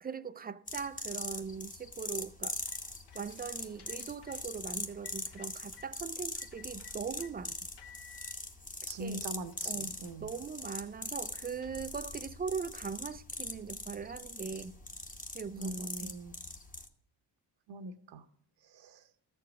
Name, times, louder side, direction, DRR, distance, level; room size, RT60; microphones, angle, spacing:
voice 1, 0.0-2.6 3.1-7.6 9.0-9.3 9.6-14.8 15.3-16.2, right 6 dB, 25° right, 0.3 m, -40 dB
sound 1, 0.7-16.9, left 2 dB, 20° left, 0.9 m, -42 dB
sound 2, 2.4-5.9 6.3-7.3 7.8-8.4 9.0-9.1 9.4-12.3, left 7 dB, 60° left, 1.1 m, -58 dB
voice 2, 8.8-10.3 15.6-16.3 17.7-18.2 18.6-19.1, right 2 dB, 65° right, 1.0 m, -42 dB
13.0 x 4.6 x 6.1 m
cardioid pair, 85°, 45 cm